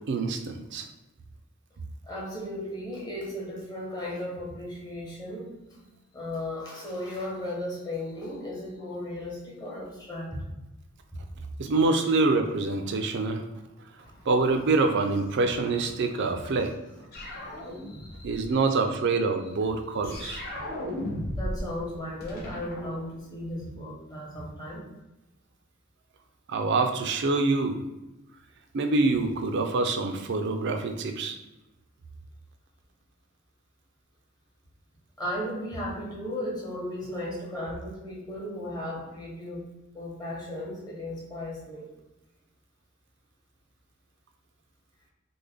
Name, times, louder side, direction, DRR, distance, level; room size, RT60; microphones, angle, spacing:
voice 1, 0.1-0.9 11.6-13.4 14.3-16.7 18.2-20.4 26.5-27.8 28.7-31.4, right 3 dB, 60° right, 6 dB, 0.4 m, -25 dB
voice 2, 2.0-5.5 6.1-10.4 11.6-12.1 14.0-14.3 15.1-15.2 15.8-15.9 16.2-16.7 17.2-18.6 21.4-24.9 35.2-39.7 39.9-41.9, left 1 dB, 20° left, -4 dB, 1.0 m, -36 dB
sound 1, 17.1-18.4 20.0-21.7 22.0-23.6, left 1 dB, 50° left, 0.8 m, -35 dB
3.4 x 2.1 x 3.5 m, 0.98 s
head